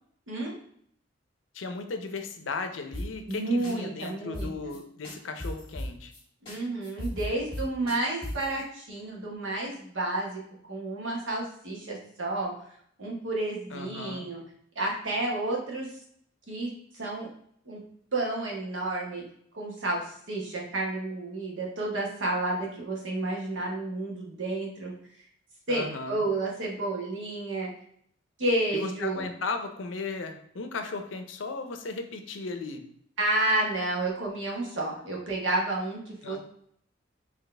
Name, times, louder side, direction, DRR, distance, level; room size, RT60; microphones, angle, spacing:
voice 1, 0.3-0.6 3.3-4.5 6.4-10.4 10.7-12.5 13.0-14.4 14.7-15.9 16.5-17.3 17.7-17.8 18.1-19.2 19.5-24.9 25.7-27.7 28.4-29.3 33.2-36.4, right 2 dB, 85° right, -2 dB, 1.2 m, -30 dB
voice 2, 1.5-6.1 13.7-14.3 25.7-26.2 28.7-32.9 36.2-36.4, left 3 dB, 80° left, 7 dB, 0.5 m, -36 dB
sound 1, 2.9-3.4 3.6-3.7 4.0-4.1 4.3-4.8 5.0-6.2 6.5-6.6 6.8-8.5, left 1 dB, 25° left, 1.5 m, -36 dB
4.1 x 3.0 x 3.3 m, 0.66 s
head